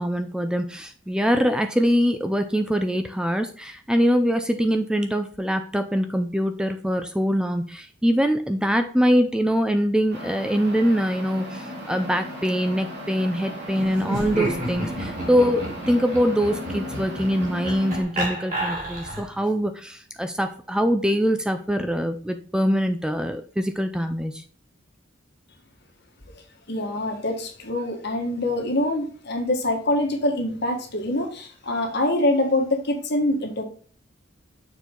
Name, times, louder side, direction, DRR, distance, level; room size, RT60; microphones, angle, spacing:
voice 1, 0.0-24.4, equal, 5° right, 0.5 m, -23 dB
sound 1, 10.1-18.0, equal, 60° right, 2.5 m, -35 dB
Laughter, 14.0-19.4, right 1 dB, 40° right, 2.9 m, -31 dB
voice 2, 26.7-33.6, left 1 dB, 60° left, 1.6 m, -25 dB
6.9 x 4.5 x 3.8 m
head